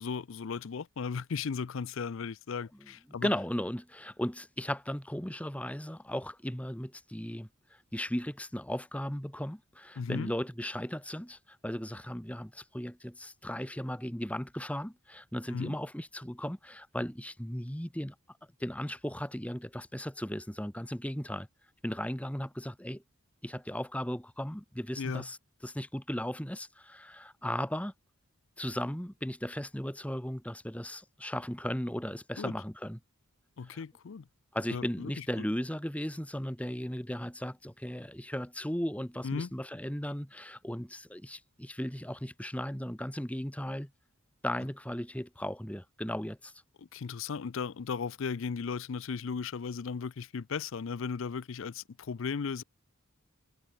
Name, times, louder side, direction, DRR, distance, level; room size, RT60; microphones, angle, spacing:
voice 1, 0.0-3.3 10.0-10.3 15.5-15.8 25.0-25.3 32.4-32.5 33.6-34.3 34.7-35.4 39.2-39.5 46.8-52.6, left 5 dB, 60° left, 0.5 m, -36 dB
voice 2, 3.1-18.1 18.6-21.5 21.8-23.0 23.4-25.4 25.6-27.9 28.6-33.0 33.7-33.8 34.5-43.9 44.4-46.5, equal, 5° left, 1.8 m, -36 dB
head